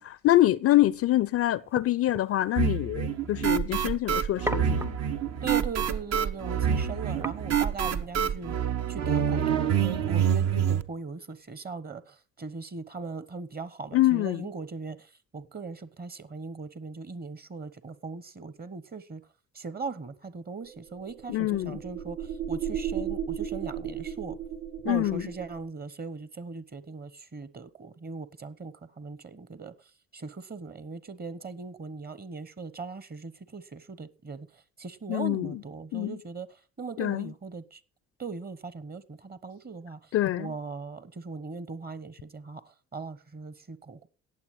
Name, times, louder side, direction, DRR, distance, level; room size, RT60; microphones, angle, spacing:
voice 1, 0.0-4.9 13.9-14.5 21.3-21.8 24.8-25.3 35.1-35.6 35.9-36.2 37.0-37.3 40.1-40.5, left 15 dB, 40° left, 0.5 m, -25 dB
Horn dropped on stone floor, 0.7-8.5, right 1 dB, 5° right, 0.5 m, -42 dB
sound 1, 2.6-10.8, right 8 dB, 45° right, 0.9 m, -27 dB
voice 2, 5.4-8.6 8.9-15.0 15.3-19.2 19.6-22.2 22.5-24.4 24.9-29.7 30.1-34.5 34.8-36.5 36.8-37.8 38.2-40.0 40.4-42.6 42.9-44.1, right 4 dB, 25° right, 1.0 m, -39 dB
sound 2, 20.7-25.6, right 8 dB, 75° right, 1.3 m, -35 dB
18.0 x 7.3 x 3.2 m
figure-of-eight pair, 50°, 36 cm